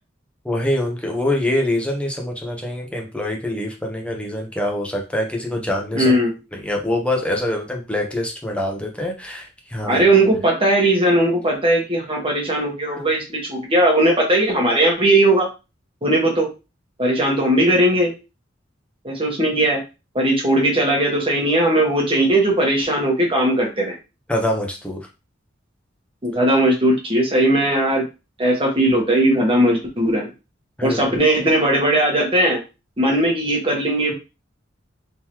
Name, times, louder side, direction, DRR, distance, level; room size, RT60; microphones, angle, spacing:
voice 1, 0.4-6.1 6.5-10.0 12.9-13.1 24.3-25.0 30.8-31.0, left 1 dB, 5° left, 1 dB, 0.8 m, -24 dB
voice 2, 5.9-6.3 9.9-15.5 16.0-16.5 17.0-18.1 19.0-19.8 20.1-23.9 26.2-28.0 28.4-30.3 30.8-32.6 33.0-34.1, right 1 dB, 30° right, -1 dB, 1.4 m, -18 dB
3.8 x 3.1 x 2.9 m, 0.28 s
head